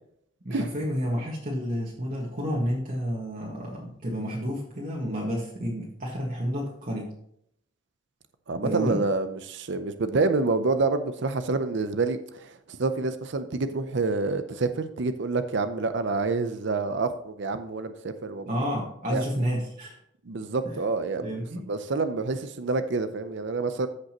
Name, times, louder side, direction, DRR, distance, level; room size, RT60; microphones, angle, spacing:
voice 1, 0.4-7.2 8.6-9.0 18.5-20.0 20.6-20.8 21.2-21.6, equal, 45° right, -4 dB, 1.6 m, -30 dB
voice 2, 8.5-18.5 19.1-19.2 20.3-21.3 21.7-23.9, right 3 dB, 65° right, 10 dB, 0.6 m, -27 dB
14.5 x 5.3 x 3.0 m, 0.71 s
head